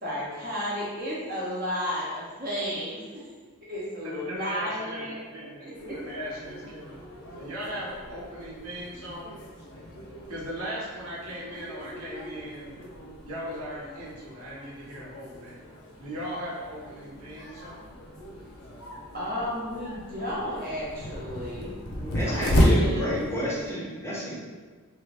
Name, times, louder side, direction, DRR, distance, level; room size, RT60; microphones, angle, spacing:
voice 1, 0.0-3.2 3.7-5.2 5.6-6.0 19.1-23.3, equal, 40° right, -7 dB, 0.8 m, -33 dB
voice 2, 4.0-5.7 5.9-7.0 7.4-9.3 10.3-12.7 13.2-15.6 16.0-17.9, equal, 75° right, -6 dB, 1.0 m, -38 dB
sound 1, 5.7-23.7, equal, 75° left, 0.6 m, -33 dB
voice 3, 22.1-24.4, equal, 10° left, -6 dB, 0.6 m, -30 dB
2.9 x 2.5 x 3.3 m, 1.4 s
head